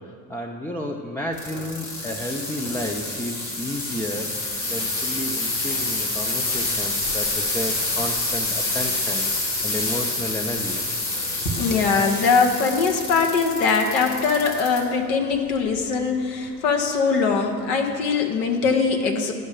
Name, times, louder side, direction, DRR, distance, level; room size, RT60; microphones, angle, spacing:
voice 1, 0.0-4.4 4.7-9.3 9.6-10.8, equal, 5° left, 2 dB, 0.5 m, -32 dB
sound 1, 1.3-14.8 15.3-15.8 16.4-16.5, left 2 dB, 85° left, 1.8 m, -27 dB
voice 2, 11.6-19.3, left 5 dB, 65° left, 3 dB, 1.2 m, -21 dB
11.0 x 5.2 x 6.6 m, 2.2 s
hypercardioid pair, 65°, 50 cm